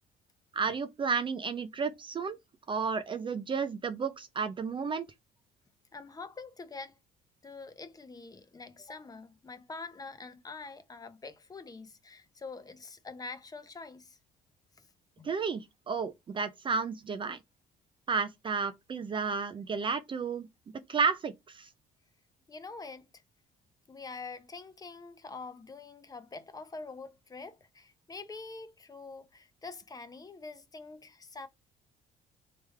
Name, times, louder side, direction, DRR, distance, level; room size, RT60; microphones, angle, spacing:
voice 1, 0.5-2.4 2.7-5.1 15.2-17.4 18.1-20.5 20.9-21.7, right 5 dB, 30° right, 0.4 m, -32 dB
voice 2, 5.9-7.0 7.4-14.2 15.2-15.3 22.5-23.2 23.9-31.5, left 4 dB, 20° left, 0.6 m, -45 dB
3.4 x 3.3 x 3.1 m
cardioid pair, 110°, 17 cm